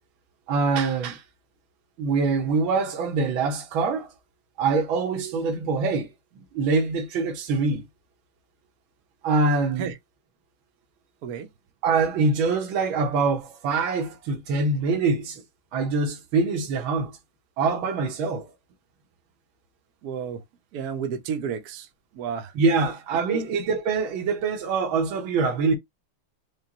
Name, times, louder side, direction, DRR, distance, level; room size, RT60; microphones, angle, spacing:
voice 1, 0.5-1.2 2.0-4.1 4.6-6.1 6.5-7.8 9.2-9.9 11.8-15.4 15.7-17.1 17.6-18.5 22.6-25.7, right 4 dB, 80° right, 1.7 m, -24 dB
voice 2, 20.0-20.4 20.7-21.9 22.1-22.5 23.3-23.4, right 7 dB, 60° right, 1.1 m, -31 dB
5.0 x 2.4 x 2.9 m
omnidirectional pair, 2.2 m